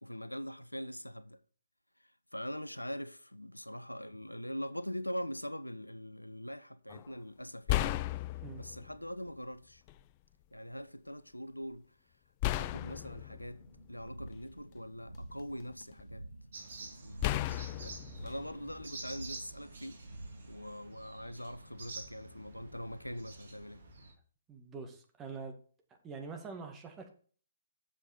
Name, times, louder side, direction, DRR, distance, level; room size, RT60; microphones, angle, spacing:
voice 1, 0.0-1.4 2.3-8.0 8.5-9.8 10.5-11.9 12.6-13.6 13.9-16.3 16.8-20.0 20.5-23.8, equal, 90° left, 0.6 m, -43 dB
sound 1, 6.9-7.1 7.7-9.0 9.9-10.0 12.4-14.6 15.1-16.0 17.2-19.3, left 16 dB, 30° left, 0.4 m, -35 dB
sound 2, 13.4-20.7, right 1 dB, 85° right, 0.8 m, -51 dB
sound 3, 16.5-24.1, right 3 dB, 55° right, 2.4 m, -49 dB
voice 2, 24.5-25.6 26.0-27.1, right 4 dB, 15° right, 1.8 m, -44 dB
7.8 x 7.4 x 4.2 m
figure-of-eight pair, 125°, 0 cm